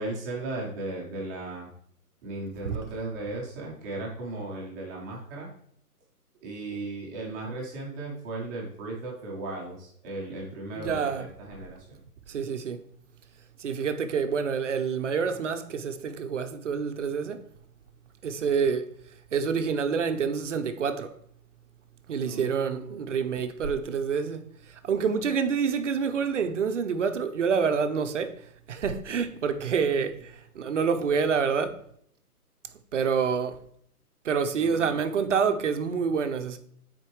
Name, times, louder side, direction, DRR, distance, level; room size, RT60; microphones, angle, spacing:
voice 1, 0.0-1.7 2.2-5.5 6.4-12.0 22.2-23.0 34.6-35.0, right 2 dB, 10° right, 0.8 m, -36 dB
voice 2, 10.7-11.3 12.3-12.8 13.6-17.4 18.2-18.9 19.3-21.1 22.1-24.4 24.8-28.4 28.7-31.8 32.9-33.6 34.2-36.6, right 6 dB, 50° right, 0.7 m, -27 dB
9.1 x 4.3 x 3.1 m
hypercardioid pair, 150°, 46 cm